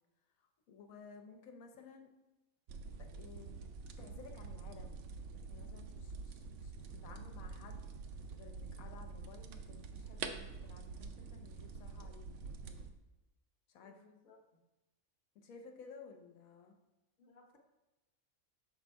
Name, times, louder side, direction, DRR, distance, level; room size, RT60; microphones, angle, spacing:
voice 1, 0.4-2.1 2.9-3.6 4.0-5.0 5.5-7.9 8.3-12.4 12.6-12.9 13.7-14.1 15.3-16.7, left 5 dB, 80° left, 3 dB, 1.2 m, -56 dB
sound 1, 2.7-12.9, right 4 dB, 65° right, 0.8 m, -47 dB
voice 2, 13.8-14.6 17.2-17.6, left 3 dB, 40° left, 1 dB, 0.9 m, -64 dB
6.1 x 3.9 x 4.5 m, 1.0 s
omnidirectional pair, 1.4 m